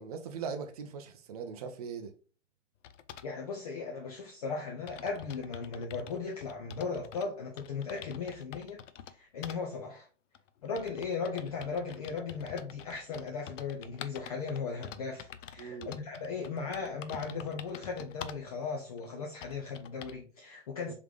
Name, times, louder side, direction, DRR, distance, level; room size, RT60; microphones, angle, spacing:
voice 1, 0.0-2.1 15.6-15.9 20.9-21.0, right 6 dB, 35° right, 0.4 m, -40 dB
sound 1, 2.8-3.3 4.2-4.3 4.5-4.6 4.9-7.3 7.6-9.1 9.4-9.6 10.3-18.5 19.0-19.1 19.4-20.2, left 9 dB, 80° left, 0.5 m, -47 dB
voice 2, 3.2-8.8 9.1-10.1 10.6-20.9, left 5 dB, 30° left, 0.5 m, -37 dB
3.7 x 3.5 x 3.0 m
hypercardioid pair, 155°, 37 cm